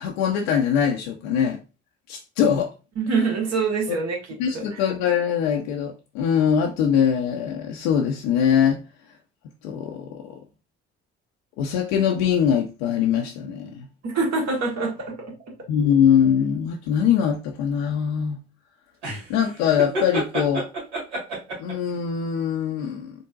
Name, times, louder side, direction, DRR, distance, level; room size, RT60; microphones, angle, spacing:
voice 1, 0.0-1.6 2.1-2.7 4.4-8.8 9.6-10.4 11.6-13.9 15.7-18.4 19.3-20.7 21.6-23.1, left 8 dB, 70° left, 0.6 m, -22 dB
voice 2, 3.0-4.8 14.0-15.2, right 4 dB, 50° right, 1.4 m, -25 dB
sound 1, 19.0-21.9, right 2 dB, 80° right, 2.1 m, -29 dB
3.9 x 3.6 x 2.4 m
figure-of-eight pair, 50°, 33 cm